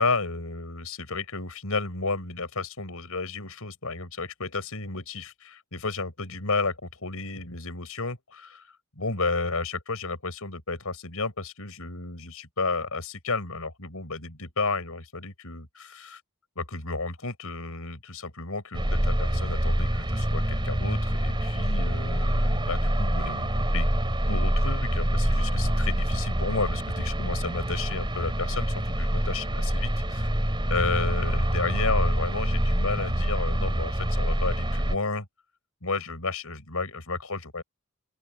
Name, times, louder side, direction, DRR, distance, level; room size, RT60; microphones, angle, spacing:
voice 1, 0.0-8.7 8.9-16.2 16.5-23.9 24.3-30.3 30.7-35.3 35.8-37.6, left 3 dB, 80° left, 5.1 m, -32 dB
sound 1, 18.7-35.0, equal, 20° right, 3.3 m, -26 dB
open air
head